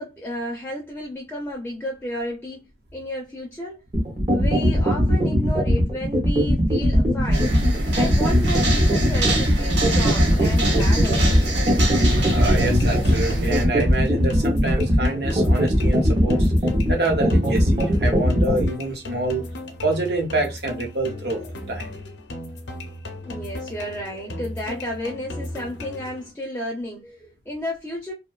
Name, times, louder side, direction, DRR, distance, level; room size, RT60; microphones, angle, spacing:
voice 1, 0.0-3.8 4.3-7.5 7.9-11.4 23.2-28.1, left 1 dB, 10° left, 0.4 m, -32 dB
sound 1, 3.9-18.7, equal, 35° right, 0.6 m, -19 dB
sound 2, 7.3-13.6, right 1 dB, 85° right, 0.7 m, -25 dB
sound 3, 10.3-26.3, left 1 dB, 85° left, 0.6 m, -36 dB
voice 2, 12.3-16.5 16.9-19.4 19.8-21.4 21.7-21.9, right 2 dB, 65° right, 0.9 m, -27 dB
2.5 x 2.2 x 2.3 m
head